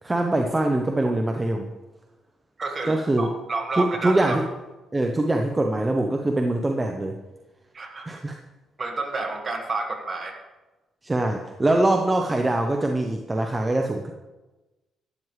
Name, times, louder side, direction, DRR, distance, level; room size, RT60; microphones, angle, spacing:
voice 1, 0.0-1.7 2.9-3.3 3.8-4.5 4.9-7.2 8.1-8.4 11.0-14.1, right 2 dB, 20° right, 3 dB, 0.8 m, -23 dB
voice 2, 2.6-4.4 7.7-8.1 8.8-10.4, right 3 dB, 35° right, 4 dB, 1.6 m, -30 dB
12.0 x 9.3 x 3.2 m, 1.1 s
cardioid pair, 90°, 0 cm